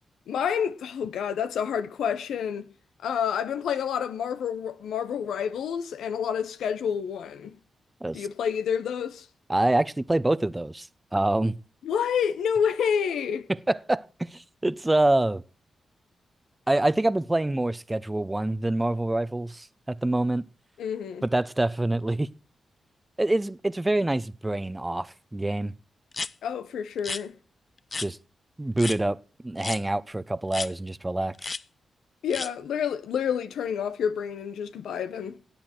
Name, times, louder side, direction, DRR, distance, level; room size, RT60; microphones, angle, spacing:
voice 1, 0.3-2.7 3.0-7.5 8.1-9.3 11.8-13.5 20.8-21.2 26.4-27.3 32.2-35.3, left 7 dB, 85° left, 1.0 m, -28 dB
voice 2, 9.5-10.9 11.1-11.6 13.5-15.4 16.7-20.5 21.2-22.3 23.2-25.7 28.0-28.2 28.6-29.2 29.4-31.5, right 2 dB, 20° right, 0.8 m, -26 dB
sound 1, 26.1-26.3 27.0-27.2 27.9-28.1 28.8-29.0 29.6-29.8 30.5-30.7 31.4-31.6 32.3-32.5, left 4 dB, 45° left, 0.6 m, -32 dB
17.5 x 8.6 x 4.5 m
supercardioid pair, 50°, 0 cm